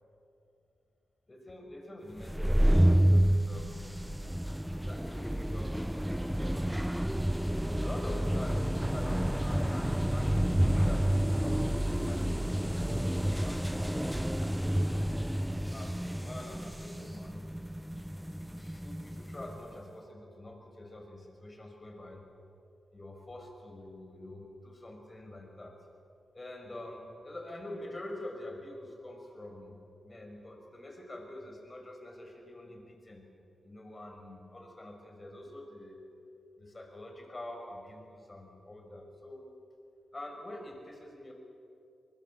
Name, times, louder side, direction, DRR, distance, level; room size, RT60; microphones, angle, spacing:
voice 1, 1.3-6.8 7.8-14.9 15.7-17.5 18.4-22.3 22.9-25.8 26.3-33.2 33.6-36.0 36.6-39.5 40.1-41.3, left 1 dB, 30° left, 2 dB, 6.1 m, -46 dB
sound 1, 2.2-19.6, equal, 5° right, 0.7 m, -29 dB
24.0 x 21.5 x 7.4 m, 2.7 s
cardioid pair, 55°, 0 cm